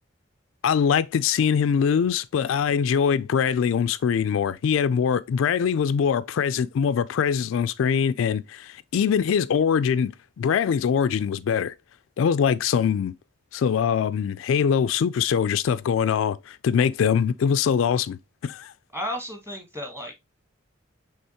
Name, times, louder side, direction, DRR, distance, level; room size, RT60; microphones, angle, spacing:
voice 1, 0.6-11.7 12.2-13.1 13.5-18.7, left 7 dB, 80° left, 0.3 m, -23 dB
voice 2, 18.9-20.2, equal, 15° right, 1.3 m, -33 dB
5.5 x 3.4 x 2.8 m
head